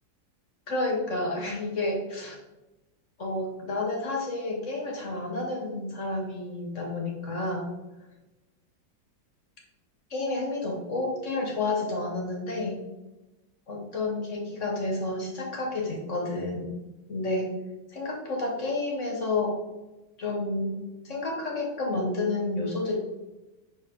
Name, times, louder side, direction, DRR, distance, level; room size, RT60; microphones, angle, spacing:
voice 1, 0.7-2.4 3.2-7.7 10.1-12.8 13.7-16.8 17.1-17.5 17.9-19.6 20.2-23.0, left 2 dB, 45° left, 0 dB, 1.4 m, -30 dB
5.5 x 5.5 x 3.6 m, 1.0 s
omnidirectional pair, 2.1 m